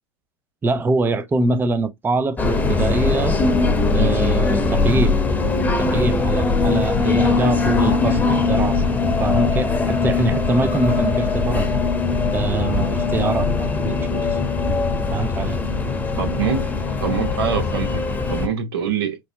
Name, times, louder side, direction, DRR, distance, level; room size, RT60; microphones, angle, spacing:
voice 1, 0.6-3.4 3.9-5.2 5.8-11.8 12.3-14.4 15.1-15.6, right 2 dB, 15° right, 0.5 m, -24 dB
sound 1, 2.4-18.5, left 3 dB, 15° left, 0.9 m, -20 dB
voice 2, 16.2-16.6 17.0-18.0 18.3-19.2, right 7 dB, 85° right, 1.1 m, -24 dB
4.5 x 2.1 x 2.8 m
hypercardioid pair, 105°, 13 cm